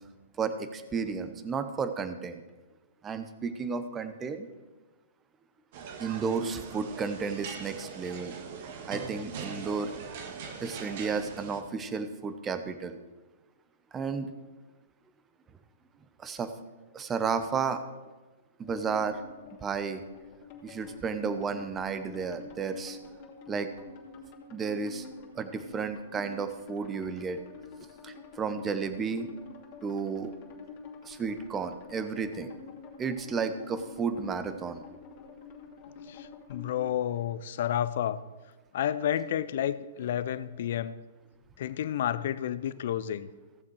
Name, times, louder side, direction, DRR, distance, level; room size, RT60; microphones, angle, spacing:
voice 1, 0.4-2.4 3.0-4.5 6.0-8.4 8.8-9.9 10.6-13.0 13.9-14.3 16.2-16.5 16.9-17.8 18.6-19.2 19.6-20.0 20.6-23.0 23.5-23.7 24.5-25.1 25.3-27.4 28.0-29.3 29.8-30.3 31.0-32.5 33.0-34.8, right 5 dB, 20° right, 10 dB, 0.9 m, -32 dB
sound 1, 5.7-11.6, right 5 dB, 50° right, 1.4 m, -41 dB
sound 2, 18.6-36.9, left 4 dB, 40° left, 2.6 m, -48 dB
voice 2, 36.0-38.2 38.7-41.0 41.6-43.3, left 10 dB, 60° left, 16 dB, 0.5 m, -31 dB
15.5 x 7.2 x 4.8 m, 1.2 s
hypercardioid pair, 125°, 0 cm